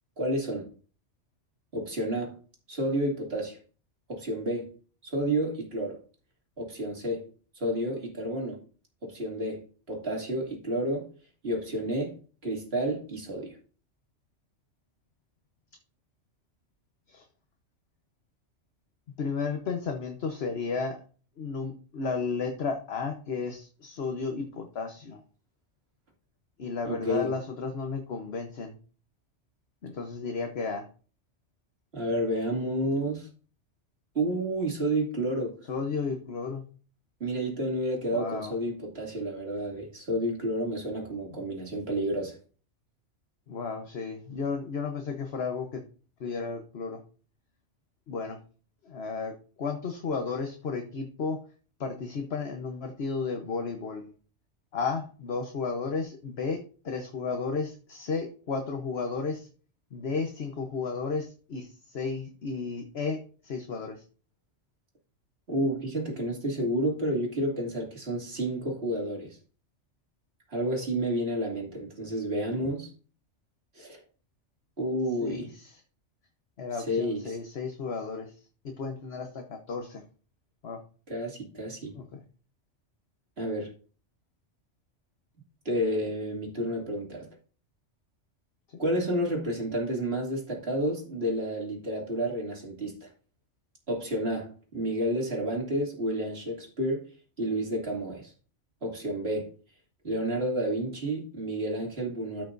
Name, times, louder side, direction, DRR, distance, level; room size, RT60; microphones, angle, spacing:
voice 1, 0.2-0.7 1.7-2.4 2.7-3.6 4.1-4.7 5.0-6.0 6.6-7.3 7.5-8.6 9.0-11.1 11.4-13.6 26.8-27.3 31.9-33.3 34.1-35.6 37.2-42.4 65.5-69.4 70.5-72.9 73.7-74.0 74.8-75.5 76.9-77.4 81.1-81.9 83.4-83.7 85.6-87.3 88.8-93.1 93.9-97.1 97.4-98.3 98.8-99.5 100.0-102.4, right 1 dB, 55° right, 2.9 m, -30 dB
voice 2, 19.2-21.0 21.4-25.2 26.6-28.8 29.8-30.9 35.7-36.6 38.1-38.6 41.3-41.5 43.5-45.8 46.2-47.0 48.1-48.4 48.8-51.4 51.8-54.1 54.7-59.5 59.9-64.0 75.2-75.8 76.6-78.3 78.6-80.0 80.6-80.8 81.9-82.2 88.7-88.8, left 4 dB, 60° left, 1.3 m, -33 dB
13.0 x 6.1 x 2.6 m
omnidirectional pair, 1.2 m